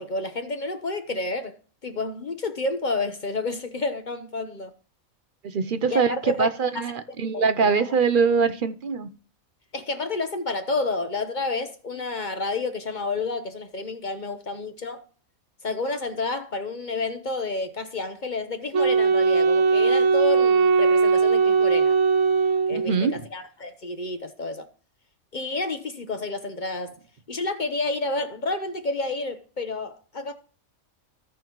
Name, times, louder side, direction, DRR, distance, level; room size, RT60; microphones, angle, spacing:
voice 1, 0.0-1.6 1.8-4.7 5.9-6.5 6.7-6.8 7.3-7.9 9.7-15.0 15.6-22.0 22.7-24.7 25.3-27.0 27.3-30.3, left 3 dB, 40° left, 0.8 m, -30 dB
voice 2, 5.5-9.1 22.7-23.2, right 5 dB, 55° right, 0.6 m, -23 dB
Wind instrument woodwind instrument, 18.7-23.2, right 4 dB, 75° right, 1.1 m, -20 dB
15.5 x 5.3 x 3.0 m
omnidirectional pair, 1.4 m